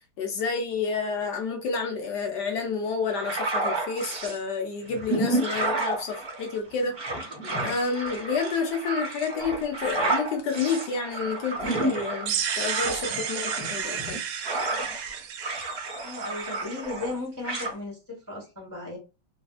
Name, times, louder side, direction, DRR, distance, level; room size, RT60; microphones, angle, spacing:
voice 1, 0.2-7.0 7.6-14.2, left 5 dB, 65° left, 1.1 m, -29 dB
sound 1, 3.1-4.4 4.9-15.1 15.4-17.2 17.4-17.7, right 2 dB, 45° right, 0.8 m, -31 dB
sound 2, 12.3-17.1, right 8 dB, 75° right, 1.3 m, -33 dB
voice 2, 16.0-19.0, left 2 dB, 10° left, 0.8 m, -36 dB
3.3 x 2.7 x 2.3 m
omnidirectional pair, 2.3 m